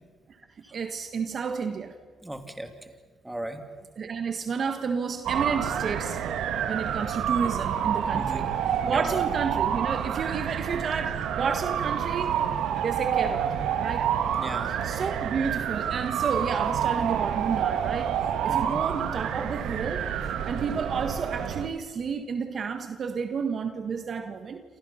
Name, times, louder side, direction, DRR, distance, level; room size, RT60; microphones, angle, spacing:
voice 1, 0.7-2.0 4.0-6.2 6.7-8.5 8.8-12.4 12.8-14.1 14.8-18.2 18.4-20.1 20.4-24.6, right 5 dB, 50° right, 7 dB, 1.6 m, -31 dB
voice 2, 2.2-2.9 3.2-3.6 8.1-8.5 8.8-9.2 14.4-14.7 18.5-18.8, right 1 dB, 10° right, 5 dB, 3.1 m, -36 dB
sound 1, 5.3-21.7, right 9 dB, 80° right, 1.9 m, -28 dB
28.5 x 27.5 x 5.8 m, 1.5 s
cardioid pair, 90°, 0 cm